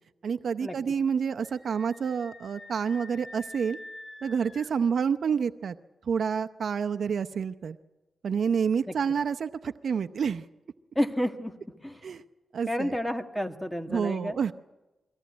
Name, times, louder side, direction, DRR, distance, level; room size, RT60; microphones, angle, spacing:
voice 1, 0.2-3.8 4.2-5.8 6.1-7.8 8.2-10.5 12.0-12.2 12.5-13.0 13.9-14.5, right 6 dB, 70° right, 11 dB, 0.7 m, -28 dB
Screaming, 1.4-4.7, left 2 dB, 25° left, 5.5 m, -46 dB
voice 2, 11.0-11.6 11.8-12.0 12.7-14.4, equal, 5° left, 6 dB, 1.7 m, -30 dB
23.5 x 16.5 x 9.5 m, 1.1 s
cardioid pair, 90°, 0 cm